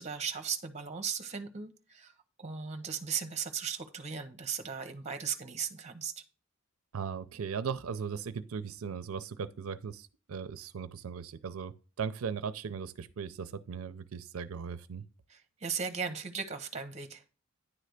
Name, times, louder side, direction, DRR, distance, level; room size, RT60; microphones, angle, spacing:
voice 1, 0.0-2.1 2.4-6.1 15.3-17.2, right 6 dB, 35° right, 0.8 m, -37 dB
voice 2, 6.9-15.0, right 6 dB, 90° right, 0.5 m, -38 dB
9.8 x 3.3 x 6.4 m
head